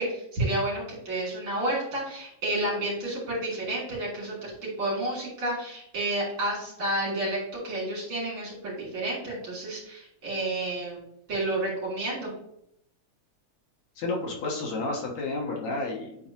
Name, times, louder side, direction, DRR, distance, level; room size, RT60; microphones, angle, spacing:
voice 1, 0.0-11.0 11.3-12.3, right 1 dB, 45° right, -6 dB, 3.7 m, -30 dB
voice 2, 14.0-16.2, left 3 dB, 70° left, -1 dB, 2.6 m, -31 dB
9.3 x 4.3 x 2.9 m, 0.75 s
omnidirectional pair, 3.4 m